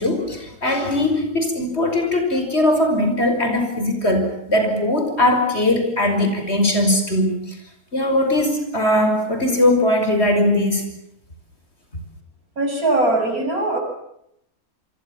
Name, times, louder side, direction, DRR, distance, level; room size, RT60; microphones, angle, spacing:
voice 1, 0.0-7.6 7.9-10.8, left 1 dB, 40° left, 5 dB, 5.9 m, -20 dB
voice 2, 12.6-13.8, right 2 dB, 65° right, 4 dB, 7.0 m, -20 dB
27.5 x 24.0 x 7.2 m, 0.76 s
omnidirectional pair, 1.6 m